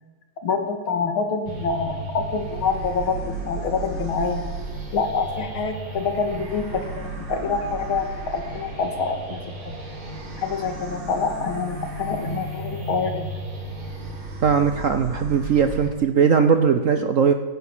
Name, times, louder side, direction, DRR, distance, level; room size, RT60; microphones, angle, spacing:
voice 1, 0.4-4.5 4.9-9.7 10.4-13.3, left 5 dB, 90° left, 6 dB, 2.6 m, -26 dB
sound 1, 1.5-15.9, right 2 dB, 85° right, 3.3 m, -34 dB
sound 2, 6.1-11.3, left 2 dB, 55° left, 3.1 m, -48 dB
voice 2, 14.4-17.3, right 6 dB, 60° right, 8 dB, 0.8 m, -19 dB
16.5 x 9.6 x 7.4 m, 1.3 s
omnidirectional pair, 2.2 m